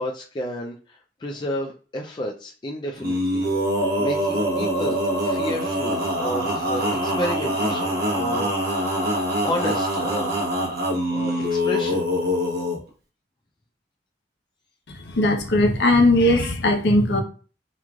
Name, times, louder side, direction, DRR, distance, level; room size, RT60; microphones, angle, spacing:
voice 1, 0.0-3.5 4.0-8.7 9.4-10.3 11.1-12.1, left 1 dB, 25° left, 0 dB, 0.3 m, -31 dB
Male singing, 3.0-12.8, equal, 65° right, 0.9 m, -24 dB
voice 2, 14.9-17.2, left 1 dB, 75° left, 3 dB, 0.6 m, -19 dB
3.0 x 2.4 x 2.3 m, 0.37 s
head